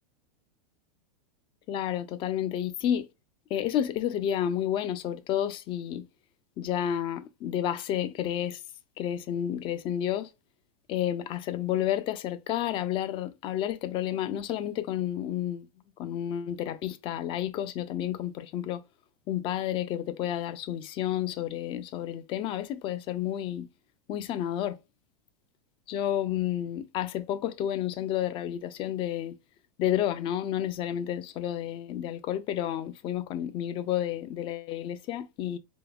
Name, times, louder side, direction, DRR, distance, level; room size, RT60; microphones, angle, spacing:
voice 1, 1.7-3.0 3.5-6.0 6.6-8.6 9.0-10.3 10.9-15.6 16.0-18.8 19.3-23.6 24.1-24.7 25.9-29.3 29.8-35.6, left 11 dB, 25° left, 0.3 m, -30 dB
3.6 x 2.8 x 2.3 m
supercardioid pair, 140°, 19 cm